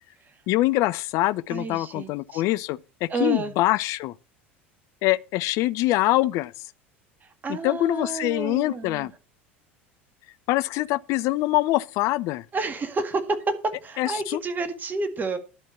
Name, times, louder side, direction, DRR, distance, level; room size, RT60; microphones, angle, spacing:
voice 1, 0.5-4.1 5.0-6.5 7.5-9.1 10.5-12.5 14.0-14.4, left 17 dB, 55° left, 0.5 m, -24 dB
voice 2, 1.5-2.4 3.1-3.5 7.4-9.1 12.5-13.6 13.8-15.4, right 3 dB, 25° right, 1.9 m, -30 dB
11.5 x 4.5 x 7.0 m
hypercardioid pair, 75°, 7 cm